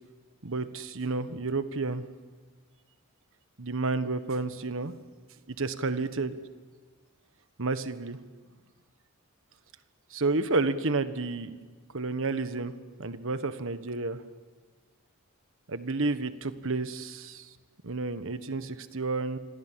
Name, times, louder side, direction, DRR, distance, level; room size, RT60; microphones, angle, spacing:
voice 1, 0.4-2.1 3.6-4.9 5.5-6.3 7.6-8.2 10.1-11.5 11.9-12.7 13.0-14.2 15.7-17.5 17.8-19.4, right 3 dB, 65° right, 11 dB, 1.4 m, -30 dB
28.5 x 25.5 x 7.6 m, 1.4 s
head